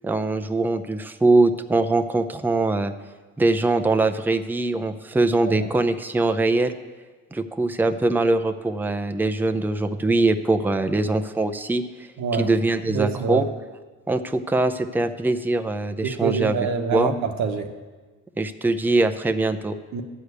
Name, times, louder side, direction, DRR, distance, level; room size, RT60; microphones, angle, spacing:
voice 1, 0.0-2.9 3.4-6.7 7.3-11.8 12.4-13.5 14.1-16.6 16.9-17.1 18.4-19.7, right 2 dB, 5° right, 8 dB, 0.5 m, -22 dB
voice 2, 12.2-12.5 12.8-13.5 16.0-17.7 19.9-20.0, right 6 dB, 70° right, 4 dB, 1.0 m, -26 dB
12.0 x 4.9 x 8.2 m, 1.3 s
cardioid pair, 90°, 30 cm